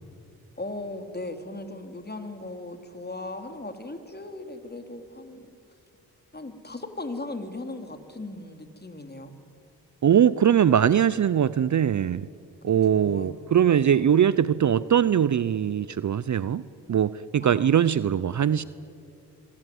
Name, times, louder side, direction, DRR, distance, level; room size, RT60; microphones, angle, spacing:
voice 1, 0.6-5.5 6.3-9.3 12.6-13.4 13.7-14.1 17.4-17.8, left 2 dB, 25° left, 3.6 m, -38 dB
voice 2, 10.0-12.3 12.6-18.6, right 9 dB, 45° right, 0.7 m, -21 dB
25.5 x 23.0 x 9.5 m
hypercardioid pair, 40°, 41 cm